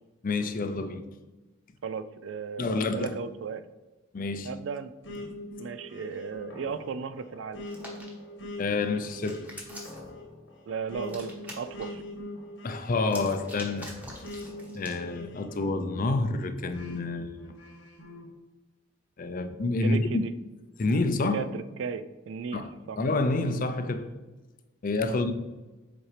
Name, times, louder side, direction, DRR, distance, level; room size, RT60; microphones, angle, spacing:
voice 1, 0.2-1.0 2.6-3.1 4.1-4.5 8.6-9.5 12.6-13.9 14.4-14.5 14.7-17.5 19.2-20.2 20.8-21.4 22.5-22.7 23.0-24.1 24.8-25.3, left 3 dB, 45° left, 0.5 m, -28 dB
voice 2, 1.8-3.6 4.4-4.9 5.6-7.6 10.7-12.0 19.8-20.3 21.3-22.6 22.9-23.0 25.1-25.3, right 6 dB, 70° right, 0.4 m, -35 dB
sound 1, 5.0-16.1 16.7-18.3, left 1 dB, 75° left, 1.3 m, -42 dB
Hands, 7.6-8.1 8.8-10.1 11.0-11.8 13.0-15.0, equal, 10° right, 1.1 m, -45 dB
7.2 x 4.3 x 3.3 m
head